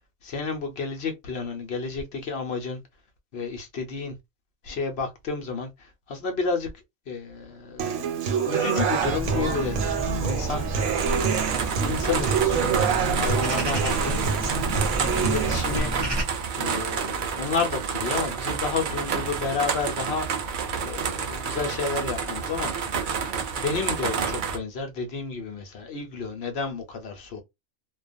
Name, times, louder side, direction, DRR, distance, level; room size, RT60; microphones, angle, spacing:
voice 1, 0.2-2.8 3.3-4.1 4.6-6.7 7.1-8.2 8.4-10.7 11.8-14.3 15.0-15.9 16.6-20.5 20.8-22.7 23.3-27.4, left 4 dB, 55° left, 0.9 m, -31 dB
Human voice / Acoustic guitar, 7.8-15.8, right 7 dB, 90° right, 1.1 m, -27 dB
sound 1, 9.0-16.2, right 1 dB, 25° right, 0.7 m, -31 dB
sound 2, 11.0-24.6, right 6 dB, 65° right, 0.5 m, -29 dB
2.4 x 2.3 x 2.4 m
omnidirectional pair, 1.4 m